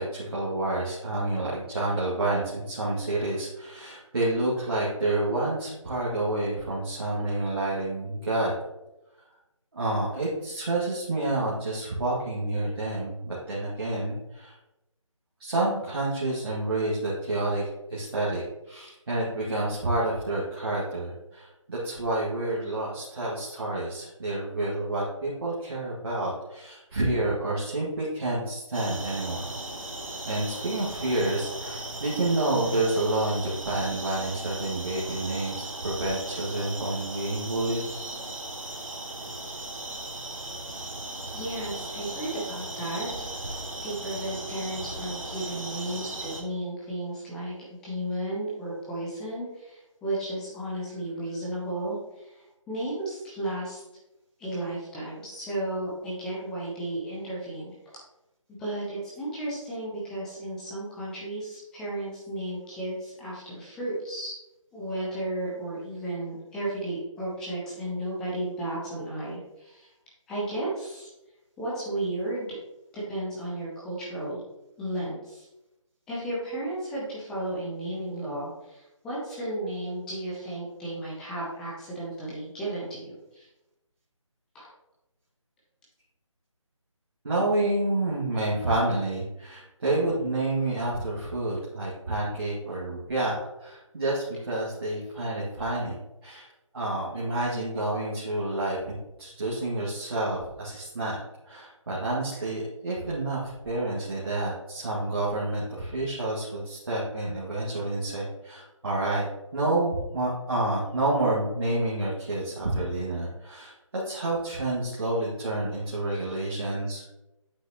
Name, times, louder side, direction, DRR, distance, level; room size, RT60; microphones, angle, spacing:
voice 1, 0.0-8.5 9.7-14.6 15.4-29.5 30.3-37.8 87.2-95.9 96.2-96.5 96.7-117.2, right 2 dB, 45° right, -8 dB, 2.0 m, -29 dB
sound 1, 28.7-46.4, right 2 dB, 80° right, 1.6 m, -37 dB
voice 2, 41.3-43.1 43.4-53.8 54.4-58.0 58.6-64.4 64.7-69.9 70.3-71.1 71.6-72.6 72.9-74.4 74.8-75.5 76.1-83.5 84.5-84.7, right 1 dB, 5° left, -6 dB, 0.6 m, -34 dB
8.2 x 6.0 x 2.9 m, 0.94 s
figure-of-eight pair, 160°, 17 cm